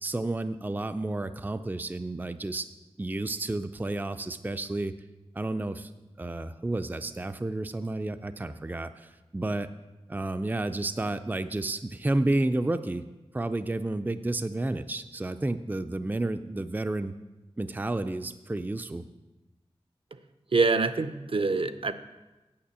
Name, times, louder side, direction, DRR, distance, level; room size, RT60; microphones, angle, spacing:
voice 1, 0.0-2.7 3.0-4.9 5.4-5.9 6.2-9.7 10.1-13.0 13.3-17.1 17.6-19.0, right 2 dB, 15° right, 10 dB, 0.4 m, -31 dB
voice 2, 20.5-21.9, right 3 dB, 55° right, 11 dB, 0.7 m, -25 dB
8.7 x 6.5 x 8.2 m, 1.1 s
wide cardioid pair, 60°, 11 cm